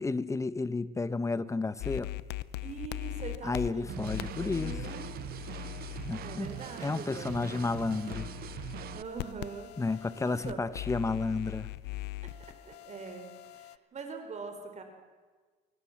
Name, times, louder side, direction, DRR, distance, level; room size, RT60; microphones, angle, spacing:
voice 1, 0.0-2.1 3.4-4.7 6.1-6.5 6.8-8.3 9.8-11.7, left 3 dB, 20° left, 1.3 m, -32 dB
sound 1, 1.8-13.7, left 16 dB, 85° left, 0.9 m, -41 dB
voice 2, 2.6-5.1 6.2-7.5 8.9-10.6 12.2-14.8, right 5 dB, 45° right, 4.6 m, -43 dB
sound 2, 3.9-9.0, right 13 dB, 65° right, 0.8 m, -42 dB
29.0 x 23.0 x 7.5 m
cardioid pair, 110°, 17 cm